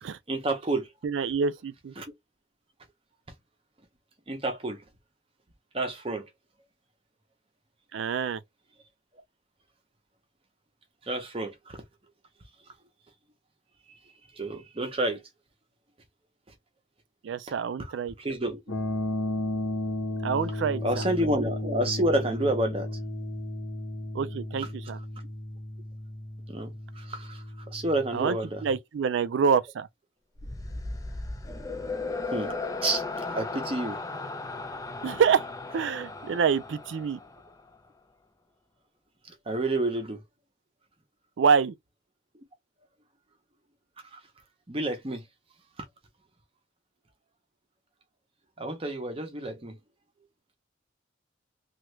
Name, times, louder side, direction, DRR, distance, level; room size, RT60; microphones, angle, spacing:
voice 1, 0.3-0.9 2.0-2.1 4.3-4.8 5.7-6.3 11.0-11.8 13.9-14.0 14.3-15.2 17.8-17.9 18.2-18.6 20.8-23.0 24.6-24.7 26.5-28.6 32.3-32.5 32.8-34.0 39.3-40.2 44.0-44.2 44.7-45.3 48.6-49.8, right 1 dB, 25° right, 0.7 m, -30 dB
voice 2, 1.0-1.9 7.9-8.4 17.2-18.1 20.2-20.8 24.1-25.0 28.1-28.4 28.6-29.9 35.0-35.4 35.7-37.2 41.4-41.7, right 6 dB, 65° right, 0.3 m, -26 dB
sound 1, 18.7-28.8, left 1 dB, 85° left, 0.9 m, -34 dB
sound 2, 30.4-37.7, left 3 dB, 15° left, 0.4 m, -36 dB
3.0 x 2.4 x 3.1 m
head